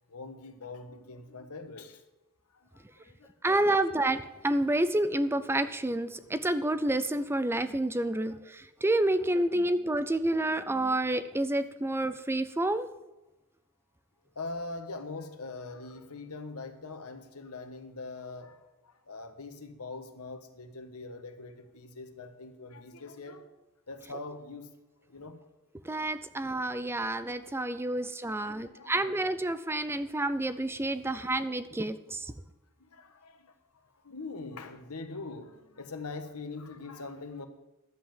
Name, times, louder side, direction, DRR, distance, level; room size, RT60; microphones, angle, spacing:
voice 1, 0.1-2.0 2.5-3.3 14.3-23.4 23.9-24.7 25.0-25.4 25.9-26.1 27.8-28.9 30.9-31.0 32.8-37.5, left 3 dB, 80° left, 7 dB, 1.5 m, -43 dB
voice 2, 3.4-12.9 25.8-32.3, right 1 dB, 10° right, 12 dB, 0.5 m, -29 dB
11.5 x 7.9 x 7.4 m, 1.0 s
head